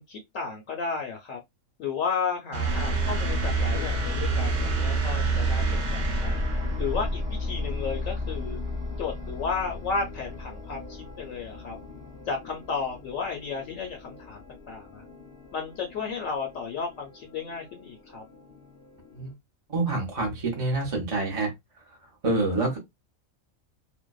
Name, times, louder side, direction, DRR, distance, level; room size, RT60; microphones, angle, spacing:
voice 1, 0.0-1.4 1.8-5.6 5.9-6.3 6.8-8.6 9.0-11.8 12.3-14.4 14.7-15.0 15.5-18.2, left 5 dB, 70° left, 0.9 m, -33 dB
sound 1, 2.5-7.2, right 7 dB, 60° right, 0.9 m, -29 dB
sound 2, 2.6-19.3, left 2 dB, 20° left, 0.7 m, -34 dB
voice 2, 19.7-21.5 22.2-22.8, right 2 dB, 35° right, 0.6 m, -26 dB
2.6 x 2.1 x 2.2 m
omnidirectional pair, 1.5 m